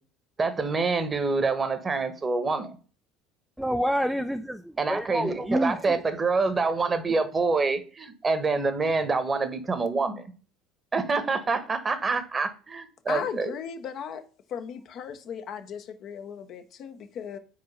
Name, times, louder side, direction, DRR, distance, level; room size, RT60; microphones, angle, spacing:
voice 1, 0.4-2.8 4.8-10.2 10.9-13.5, right 4 dB, 25° right, 1.1 m, -26 dB
voice 2, 3.6-6.0, equal, ahead, 0.4 m, -28 dB
voice 3, 13.1-14.2 14.5-17.4, left 7 dB, 50° left, 0.8 m, -36 dB
4.9 x 4.6 x 5.4 m
figure-of-eight pair, 65°, 0 cm